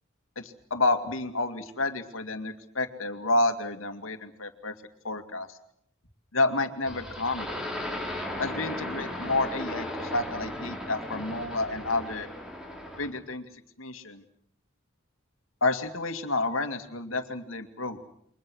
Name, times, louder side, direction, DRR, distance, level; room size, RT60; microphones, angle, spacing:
voice 1, 0.4-4.7 5.0-5.5 6.3-7.5 8.4-12.3 13.0-13.4 13.8-14.2 15.6-18.0, left 2 dB, 85° left, 7 dB, 2.4 m, -29 dB
sound 1, 6.8-13.2, left 1 dB, 5° right, 4.9 m, -36 dB
29.0 x 24.5 x 6.4 m, 0.71 s
head